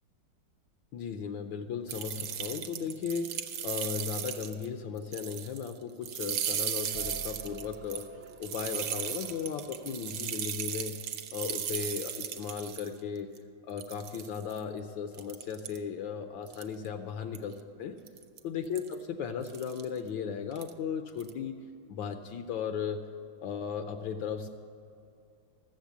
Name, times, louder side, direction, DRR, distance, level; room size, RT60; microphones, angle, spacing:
voice 1, 0.9-8.0 8.4-13.3 13.7-18.0 18.4-21.6 21.9-23.1 23.4-24.5, left 7 dB, 75° left, 7 dB, 1.3 m, -36 dB
sound 1, 1.9-4.7 5.0-5.7 6.0-12.9 13.4-13.5 13.8-14.6 15.1-15.8 16.5-16.9 17.3-17.5 18.1-18.4 18.8-18.9 19.4-19.8 20.5-20.7 21.1-21.3, right 9 dB, 70° right, 1.2 m, -36 dB
sound 2, 6.9-11.2, right 5 dB, 40° right, 0.7 m, -49 dB
13.0 x 7.5 x 7.1 m, 2.5 s
omnidirectional pair, 2.2 m